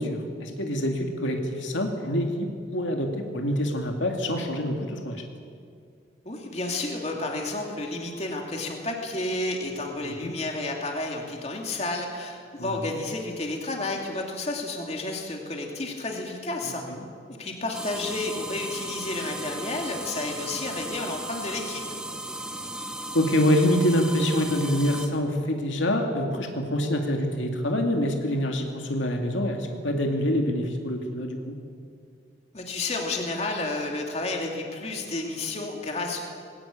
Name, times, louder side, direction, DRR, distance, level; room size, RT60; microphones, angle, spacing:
voice 1, 0.0-5.2 10.0-10.3 12.6-13.0 16.6-17.0 23.1-31.6, equal, 85° left, 3 dB, 2.2 m, -26 dB
voice 2, 6.2-16.8 17.3-21.8 32.5-36.2, left 2 dB, 35° left, 1 dB, 2.8 m, -31 dB
sound 1, 17.7-25.1, right 1 dB, 5° right, 1.3 m, -36 dB
20.0 x 17.5 x 8.7 m, 2.2 s
head